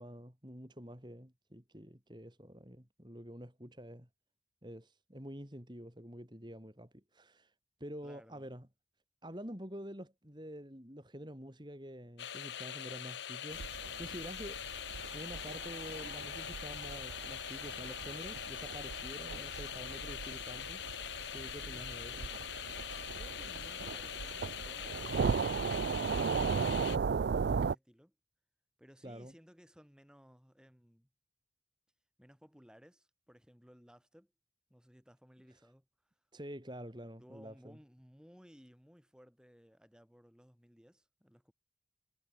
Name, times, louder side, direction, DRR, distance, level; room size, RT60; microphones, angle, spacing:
voice 1, 0.0-4.1 4.6-7.5 7.8-8.7 9.2-14.6 15.1-22.3 29.0-29.3 36.3-37.8, equal, 25° right, 5.1 m, -48 dB
voice 2, 8.0-8.5 13.9-14.3 21.5-22.0 23.1-26.9 27.4-28.1 28.8-31.1 32.2-34.3 34.7-35.9 37.2-41.5, equal, 5° right, 7.6 m, -60 dB
sound 1, 12.2-27.0, left 9 dB, 70° left, 0.7 m, -43 dB
sound 2, 13.5-27.8, right 5 dB, 60° right, 0.4 m, -37 dB
head